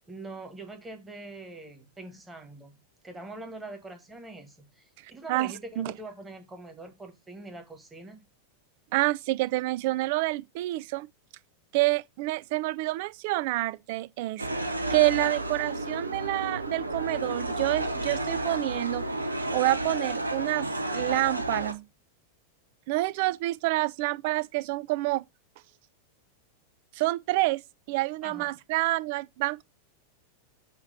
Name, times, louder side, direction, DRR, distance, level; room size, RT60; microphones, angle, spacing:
voice 1, 0.1-2.7 3.0-8.2 28.2-28.5, right 2 dB, 10° right, 1.7 m, -43 dB
voice 2, 5.3-5.9 8.9-11.1 11.7-14.5 14.9-19.0 19.5-21.8 22.9-25.2 26.9-27.6 27.9-29.6, right 19 dB, 50° right, 0.3 m, -28 dB
sound 1, 14.4-21.7, right 1 dB, 80° right, 0.8 m, -31 dB
8.0 x 2.9 x 5.6 m
figure-of-eight pair, 90°, 0 cm